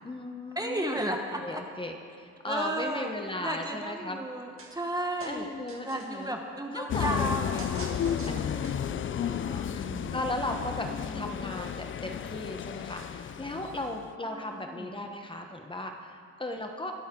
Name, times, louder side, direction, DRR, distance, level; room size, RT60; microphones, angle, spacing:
voice 1, 0.0-4.3 5.3-6.3 6.7-7.5 8.3-8.7 9.2-16.9, left 1 dB, 15° left, 4 dB, 1.1 m, -37 dB
voice 2, 0.6-1.6 2.5-3.1 3.4-5.5 5.8-10.2 10.9-11.4 14.3-15.0, right 1 dB, 10° right, 3 dB, 1.1 m, -35 dB
sound 1, 4.6-4.9 5.2-6.3 7.6-9.0, right 3 dB, 45° right, 1.8 m, -45 dB
sound 2, 6.9-14.1, left 9 dB, 40° left, 0.5 m, -33 dB
21.0 x 8.3 x 3.8 m, 2.3 s
cardioid pair, 90°, 30 cm